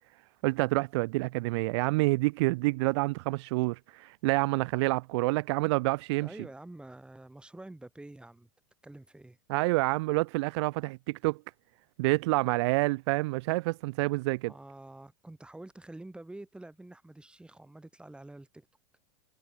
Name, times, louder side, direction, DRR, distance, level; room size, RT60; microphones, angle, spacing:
voice 1, 0.4-6.3 9.5-11.4 12.0-14.5, right 23 dB, 60° right, 1.3 m, -28 dB
voice 2, 6.2-8.5 8.8-9.4 14.5-18.7, right 2 dB, 5° right, 4.9 m, -47 dB
hypercardioid pair, 100°, 17 cm